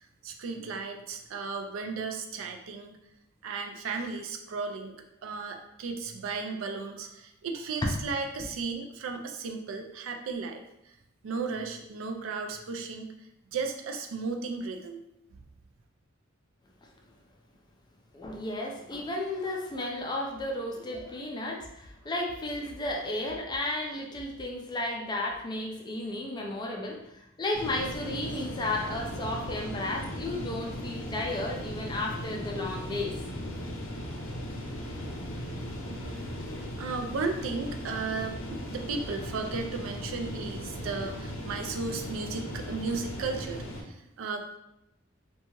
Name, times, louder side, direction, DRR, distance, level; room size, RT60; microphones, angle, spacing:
voice 1, 0.2-2.9 3.4-4.9 5.2-10.6 11.2-13.1 13.5-15.0 36.0-36.2 36.8-44.4, right 4 dB, 70° right, 4 dB, 0.4 m, -35 dB
voice 2, 18.1-33.5, left 1 dB, 20° left, 0 dB, 0.3 m, -33 dB
sound 1, 27.5-43.8, equal, 70° left, 0.6 m, -38 dB
2.7 x 2.2 x 2.9 m, 0.83 s
head